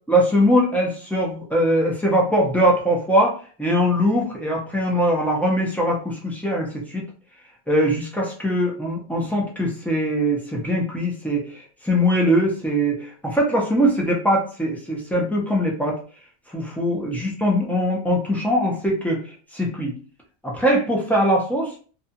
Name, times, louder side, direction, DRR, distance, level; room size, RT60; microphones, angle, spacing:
voice 1, 0.1-7.0 7.7-16.0 16.5-19.2 19.5-20.0 20.4-21.7, equal, ahead, -3 dB, 0.4 m, -21 dB
2.7 x 2.3 x 2.7 m, 0.40 s
omnidirectional pair, 1.1 m